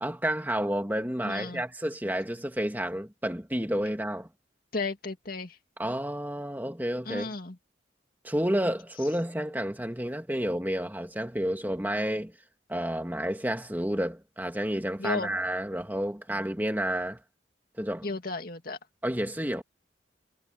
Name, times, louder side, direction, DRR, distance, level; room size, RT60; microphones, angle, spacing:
voice 1, 0.0-4.3 5.8-7.3 8.2-12.3 12.7-17.2 17.8-18.1 19.0-19.6, right 1 dB, 10° right, 2.1 m, -30 dB
voice 2, 1.2-1.6 4.7-5.6 7.0-7.6 15.0-15.3 18.0-18.8, left 3 dB, 50° left, 2.5 m, -34 dB
head